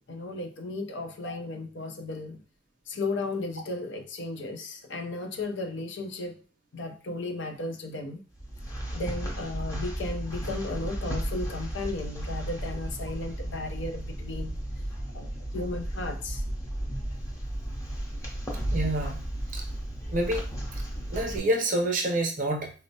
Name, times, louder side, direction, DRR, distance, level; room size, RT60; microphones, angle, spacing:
voice 1, 0.0-2.4 2.9-6.4 6.7-8.2 8.9-14.5 15.1-16.4, left 2 dB, 65° left, 0.6 m, -35 dB
sound 1, 8.3-21.4, right 1 dB, 15° left, 0.8 m, -34 dB
voice 2, 18.7-19.2 19.5-19.6 20.1-20.5 21.1-22.7, right 1 dB, 45° right, 0.7 m, -27 dB
4.2 x 2.0 x 2.7 m
head